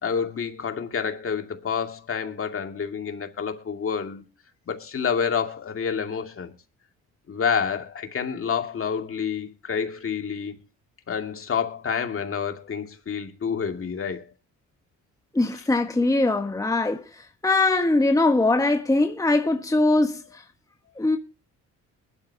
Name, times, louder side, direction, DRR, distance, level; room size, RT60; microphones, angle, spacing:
voice 1, 0.0-4.2 4.7-6.5 7.3-10.6 11.1-14.3, left 6 dB, 45° left, 2.3 m, -28 dB
voice 2, 15.3-17.0 17.4-20.2 21.0-21.2, left 2 dB, 10° left, 1.4 m, -21 dB
21.0 x 12.0 x 2.8 m
cardioid pair, 90°, 30 cm